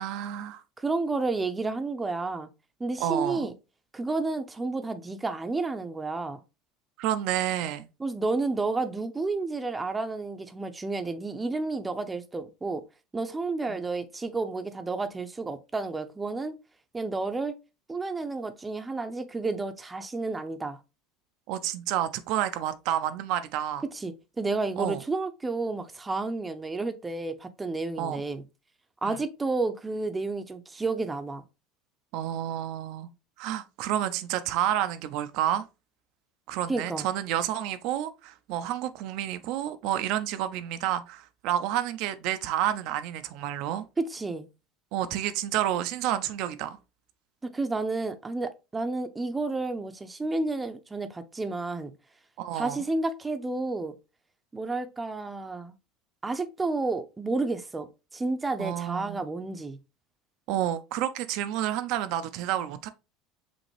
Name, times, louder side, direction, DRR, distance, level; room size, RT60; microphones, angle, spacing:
voice 1, 0.0-0.6 3.0-3.5 7.0-7.9 13.7-13.8 21.5-23.8 24.8-25.0 28.0-28.2 29.0-29.2 32.1-33.1 33.4-35.7 36.5-43.8 44.9-46.8 52.4-52.8 58.6-59.2 60.5-62.9, right 11 dB, 65° right, 0.5 m, -30 dB
voice 2, 0.8-2.5 2.8-3.5 3.9-6.4 8.0-12.8 13.1-16.6 16.9-17.6 17.9-20.8 23.9-28.4 29.0-31.4 36.7-37.1 44.0-44.5 47.4-51.9 52.5-54.0 54.5-55.7 56.2-59.8, right 3 dB, 15° right, 0.6 m, -31 dB
5.1 x 2.8 x 3.2 m
supercardioid pair, 100°, 0 cm